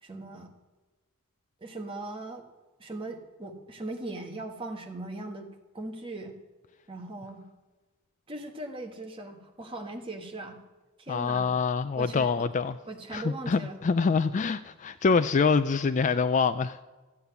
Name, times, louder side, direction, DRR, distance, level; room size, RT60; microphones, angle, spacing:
voice 1, 0.0-0.5 1.6-2.4 2.8-5.5 5.7-6.3 6.9-7.4 8.3-10.6 11.0-11.5 11.9-12.5 12.8-13.8, right 2 dB, 25° right, 1.5 m, -39 dB
voice 2, 11.1-12.8 13.1-16.8, left 5 dB, 35° left, 0.3 m, -25 dB
14.0 x 8.5 x 8.0 m
head